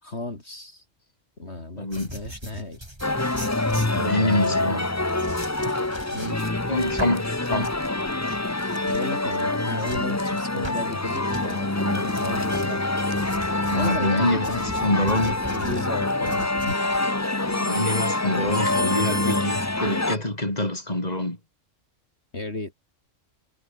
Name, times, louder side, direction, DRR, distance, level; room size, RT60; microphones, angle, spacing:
voice 1, 0.0-0.8 1.4-2.9 3.9-4.9 6.1-6.4 8.9-12.9 13.7-16.8 17.1-17.2 22.3-22.7, left 2 dB, 55° left, 4.5 m, -34 dB
voice 2, 1.8-2.1 3.9-4.8 6.7-7.7 13.7-15.4 17.5-21.4, left 1 dB, 30° left, 5.5 m, -26 dB
sound 1, 1.9-11.6 12.1-16.8, right 1 dB, 20° right, 7.0 m, -40 dB
sound 2, 3.0-20.2, left 2 dB, 15° left, 1.1 m, -26 dB
omnidirectional pair, 1.3 m